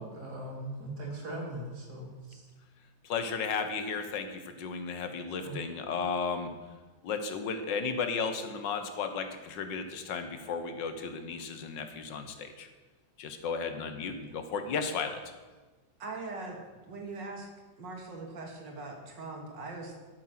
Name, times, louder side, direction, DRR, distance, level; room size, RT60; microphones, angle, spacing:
voice 1, 0.0-2.5 5.4-5.6, right 1 dB, 60° right, -1 dB, 3.2 m, -40 dB
voice 2, 3.0-6.5 7.0-12.7 13.2-15.2, left 5 dB, 85° left, 8 dB, 1.7 m, -34 dB
voice 3, 16.0-16.6 16.9-17.5 17.8-20.0, right 3 dB, 80° right, 1 dB, 2.5 m, -41 dB
13.0 x 7.5 x 6.0 m, 1.3 s
omnidirectional pair, 1.9 m